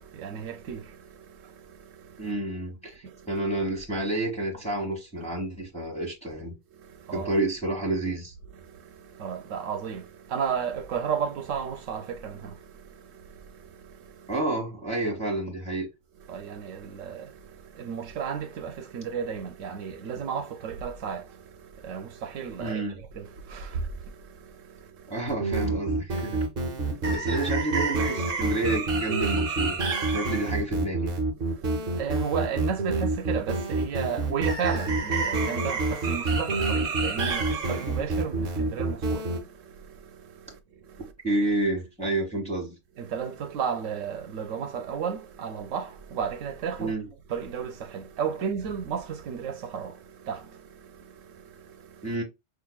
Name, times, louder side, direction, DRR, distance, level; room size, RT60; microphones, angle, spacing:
voice 1, 0.0-2.3 3.0-3.4 6.7-7.3 8.5-14.3 16.2-22.8 23.1-25.2 26.6-27.2 30.0-30.2 31.4-41.1 43.0-46.9 47.3-52.2, right 7 dB, 80° right, 1.0 m, -34 dB
voice 2, 2.2-6.5 7.1-8.3 14.3-15.9 22.6-23.0 25.1-26.4 27.0-29.8 30.1-31.2 41.2-42.8 46.8-47.0 52.0-52.2, right 2 dB, 5° left, 1.3 m, -29 dB
sound 1, 25.3-39.4, right 3 dB, 50° right, 1.0 m, -27 dB
5.8 x 2.5 x 2.3 m
omnidirectional pair, 1.3 m